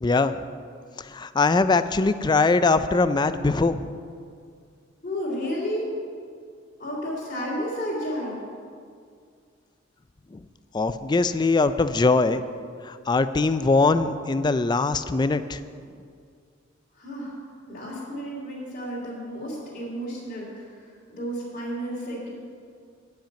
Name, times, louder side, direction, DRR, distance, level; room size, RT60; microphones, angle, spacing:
voice 1, 0.0-0.4 1.0-3.9 10.3-10.4 10.7-12.4 12.8-15.6, left 3 dB, 20° left, 12 dB, 0.3 m, -22 dB
voice 2, 5.0-5.8 6.8-8.4 16.9-17.3 17.7-20.7 21.1-22.3, equal, 40° left, -9 dB, 3.0 m, -32 dB
10.0 x 5.8 x 8.6 m, 2.2 s
head